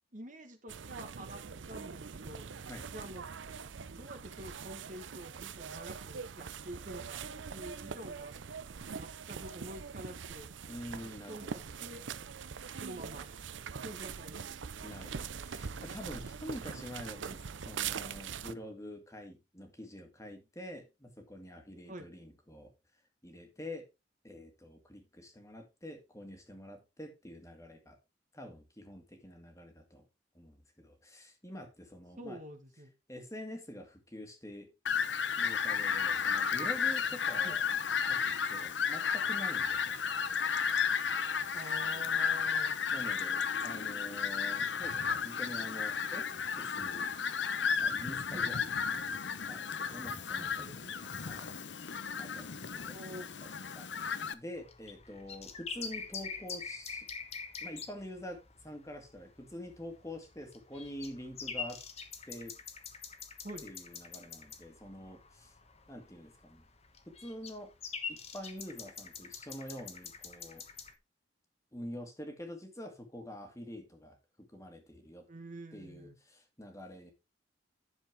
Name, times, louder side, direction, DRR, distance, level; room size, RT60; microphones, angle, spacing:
voice 1, 0.1-1.4 1.7-2.4 2.9-3.3 3.9-7.2 7.5-8.4 9.0-10.5 11.0-12.1 12.7-13.3 13.8-14.4 21.9-22.1 32.2-32.9 37.4-37.6 41.5-42.8 48.3-48.5 50.4-50.9 52.9-53.3 63.4-63.6 75.3-76.2, right 1 dB, 45° right, 1.6 m, -47 dB
sound 1, 0.7-18.5, right 6 dB, 85° right, 0.6 m, -43 dB
voice 2, 10.7-11.6 14.8-22.7 23.2-23.9 24.2-28.0 28.3-30.0 30.3-32.4 33.1-34.7 35.4-37.6 38.0-40.1 41.5-41.7 42.9-46.3 46.5-47.1 47.8-48.8 49.5-50.7 50.9-51.5 52.2-53.9 54.3-57.1 57.6-61.8 62.3-62.5 63.6-65.5 65.9-66.6 67.1-67.7 68.1-70.7 71.7-75.3 75.7-77.1, equal, 15° left, 1.9 m, -46 dB
Fowl, 34.9-54.3, left 6 dB, 70° left, 0.8 m, -33 dB
sound 2, 54.6-70.9, left 6 dB, 35° left, 1.3 m, -45 dB
11.0 x 7.0 x 3.5 m
head